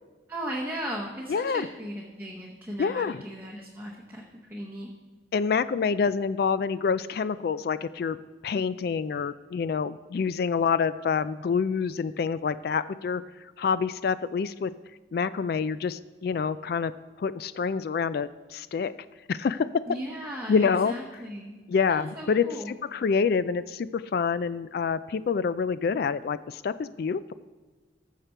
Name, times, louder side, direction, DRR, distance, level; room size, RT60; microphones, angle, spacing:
voice 1, 0.3-4.9 19.9-21.6 21.9-22.7, equal, 10° right, -2 dB, 1.0 m, -37 dB
voice 2, 1.3-1.7 2.8-3.2 5.3-8.2 8.4-13.2 13.6-14.7 15.1-16.9 17.2-18.9 19.3-19.7 20.5-20.9 21.7-27.3, left 5 dB, 55° left, 15 dB, 0.3 m, -27 dB
14.5 x 6.7 x 4.6 m, 1.3 s
head